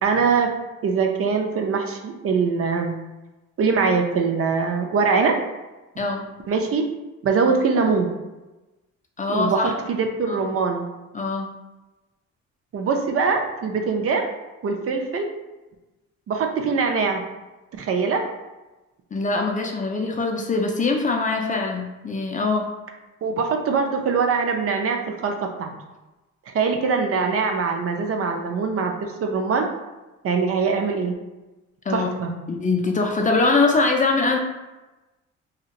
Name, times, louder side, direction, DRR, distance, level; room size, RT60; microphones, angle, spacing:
voice 1, 0.0-0.5 0.8-2.9 3.6-5.3 6.5-6.8 7.2-8.1 9.3-10.8 12.7-14.2 14.6-15.3 16.3-17.2 17.8-18.2 23.2-25.3 25.6-25.7 26.5-28.9 29.2-29.6 30.2-31.2 31.9-32.3, right 5 dB, 50° right, 3 dB, 0.5 m, -22 dB
voice 2, 9.2-9.7 10.3-10.4 11.1-11.5 19.1-22.7 31.9-32.1 32.5-34.4, left 3 dB, 25° left, 1 dB, 0.4 m, -22 dB
2.9 x 2.7 x 2.4 m, 1.1 s
cardioid pair, 90°, 30 cm